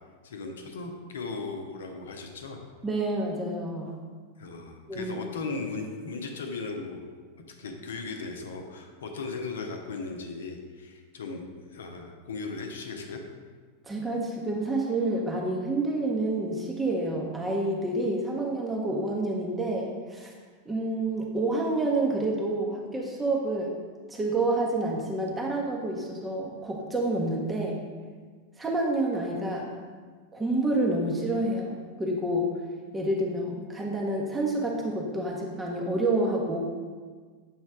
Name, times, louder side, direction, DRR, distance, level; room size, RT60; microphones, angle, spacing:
voice 1, 0.2-2.6 4.4-7.1 7.6-13.2, left 3 dB, 65° left, 4 dB, 0.6 m, -37 dB
voice 2, 2.8-3.9 4.9-5.1 13.8-20.3 20.7-23.7 24.1-27.8 28.6-29.7 30.3-32.5 32.9-36.6, right 2 dB, 10° right, -2 dB, 0.7 m, -28 dB
7.1 x 3.1 x 4.8 m, 1.5 s
figure-of-eight pair, 90°, 0 cm